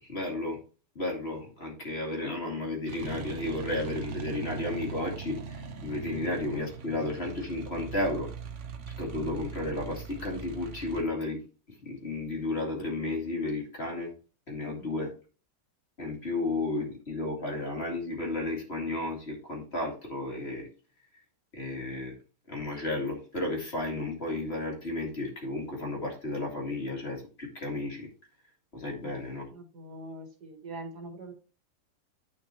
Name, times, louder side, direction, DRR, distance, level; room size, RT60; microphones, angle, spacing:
voice 1, 0.1-0.6 1.0-8.3 9.0-11.4 11.8-14.1 14.5-15.1 16.0-20.7 21.5-22.2 22.5-28.1 28.7-29.5, left 2 dB, 35° left, 0 dB, 2.5 m, -33 dB
sound 1, 2.9-11.0, right 6 dB, 50° right, 1.1 m, -40 dB
voice 2, 29.5-31.3, right 2 dB, 65° right, 4 dB, 2.1 m, -43 dB
9.9 x 5.8 x 3.0 m, 0.35 s
omnidirectional pair, 1.9 m